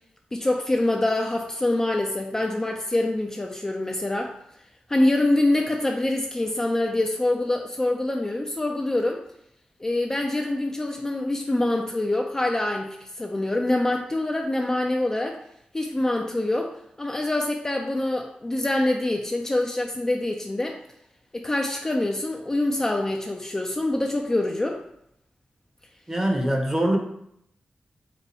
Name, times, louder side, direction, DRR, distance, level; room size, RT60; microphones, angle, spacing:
voice 1, 0.3-4.3 4.9-9.2 9.8-15.4 15.7-16.7 17.0-20.8 21.3-24.8, left 1 dB, 20° left, 2 dB, 0.3 m, -25 dB
voice 2, 26.1-27.0, right 1 dB, 15° right, 1 dB, 0.6 m, -23 dB
4.1 x 2.3 x 4.0 m, 0.75 s
wide cardioid pair, 110°, 3 cm